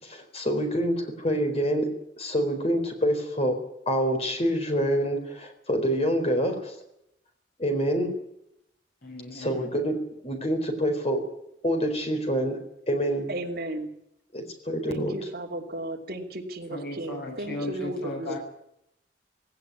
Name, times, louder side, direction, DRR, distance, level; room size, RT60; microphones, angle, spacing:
voice 1, 0.0-3.6 3.9-6.8 7.6-8.1 9.3-11.3 11.6-12.6 12.9-13.3 14.3-15.3, equal, 35° left, 5 dB, 4.3 m, -26 dB
voice 2, 9.0-9.7 16.7-18.4, left 2 dB, 60° left, -1 dB, 7.1 m, -36 dB
voice 3, 13.3-13.9 14.9-18.4, right 1 dB, 60° right, -1 dB, 2.8 m, -34 dB
17.5 x 17.5 x 9.7 m, 0.80 s
head